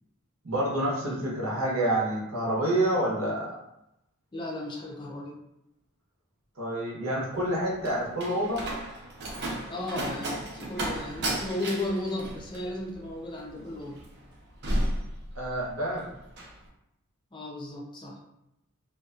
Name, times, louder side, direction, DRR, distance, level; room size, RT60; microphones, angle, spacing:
voice 1, 0.4-3.6 6.6-8.6 15.4-16.1, right 1 dB, 80° right, -4 dB, 0.9 m, -28 dB
voice 2, 4.3-5.4 9.7-14.0 17.3-18.2, left 1 dB, 20° left, -2 dB, 0.4 m, -35 dB
Slam, 7.3-15.8 16.1-16.6, right 1 dB, 50° right, 0.5 m, -34 dB
2.5 x 2.2 x 2.4 m, 0.85 s
head